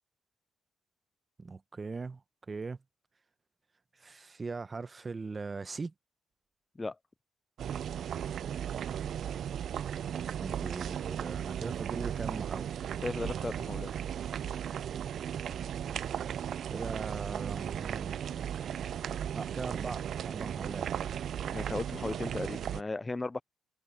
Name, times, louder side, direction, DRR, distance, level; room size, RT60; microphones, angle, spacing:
voice 1, 1.4-2.2 2.5-2.8 4.0-5.9 10.4-12.7 16.7-18.2 19.3-20.9, right 4 dB, 30° right, 1.0 m, -39 dB
sound 1, 7.6-22.8, right 9 dB, 65° right, 0.3 m, -36 dB
voice 2, 13.0-13.9 21.5-23.4, left 3 dB, 20° left, 0.4 m, -36 dB
cardioid pair, 90°, 0 cm